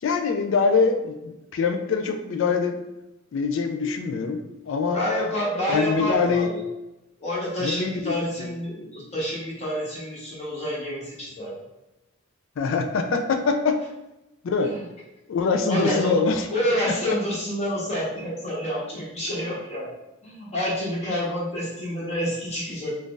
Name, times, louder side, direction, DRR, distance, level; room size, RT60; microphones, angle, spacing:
voice 1, 0.0-2.8 3.3-5.0 5.7-6.5 7.6-8.5 12.6-13.8 14.4-14.7 15.3-16.5, left 4 dB, 60° left, 5 dB, 0.3 m, -24 dB
voice 2, 4.9-6.6 7.2-11.6 14.7-14.8 15.7-16.2 16.5-19.9 20.2-23.0, equal, 30° left, -6 dB, 1.0 m, -28 dB
2.6 x 2.4 x 3.7 m, 0.98 s
head